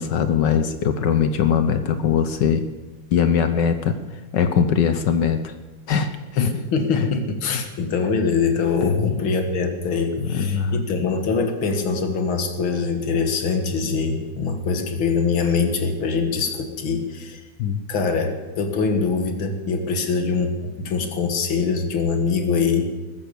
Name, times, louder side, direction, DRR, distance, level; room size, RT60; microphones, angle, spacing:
voice 1, 0.0-2.6 3.1-3.9 4.3-5.5 5.9-6.5 6.9-7.1 7.5-7.6 8.8-9.2 10.2-10.8 17.6-17.8, left 7 dB, 65° left, 9 dB, 1.4 m, -21 dB
voice 2, 6.4-17.4 17.9-22.9, left 5 dB, 90° left, 6 dB, 2.4 m, -23 dB
21.0 x 9.2 x 6.9 m, 1.2 s
omnidirectional pair, 2.2 m